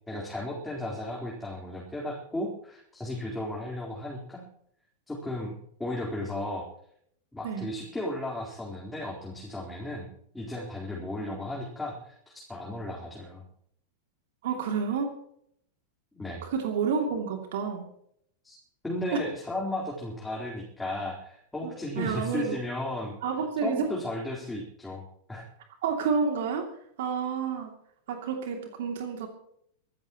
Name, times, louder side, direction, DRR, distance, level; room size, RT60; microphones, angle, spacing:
voice 1, 0.1-4.4 5.1-6.7 7.3-13.4 16.1-16.4 18.4-18.6 18.8-23.1 23.6-25.4, left 1 dB, 5° left, -4 dB, 4.1 m, -35 dB
voice 2, 14.4-15.1 16.4-17.9 19.1-19.2 21.6-22.6 23.2-23.9 25.8-26.7 27.0-27.7 28.1-29.3, right 6 dB, 55° right, 3 dB, 2.7 m, -29 dB
24.5 x 13.5 x 3.1 m, 0.69 s
figure-of-eight pair, 90°, 0 cm